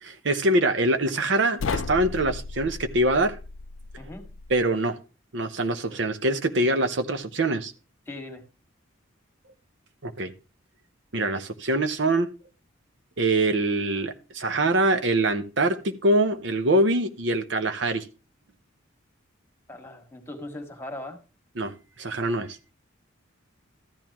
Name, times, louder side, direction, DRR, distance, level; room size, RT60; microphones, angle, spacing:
voice 1, 0.0-3.3 4.5-5.0 5.3-7.7 10.0-10.3 11.1-12.3 13.2-18.0 21.6-22.6, right 2 dB, 60° right, 8 dB, 0.8 m, -24 dB
sound 1, 1.6-4.7, left 4 dB, 70° left, 0.5 m, -34 dB
voice 2, 4.0-4.3 8.1-8.4 19.7-21.2, left 1 dB, 10° left, 4 dB, 1.9 m, -39 dB
14.0 x 10.5 x 3.0 m, 0.33 s
head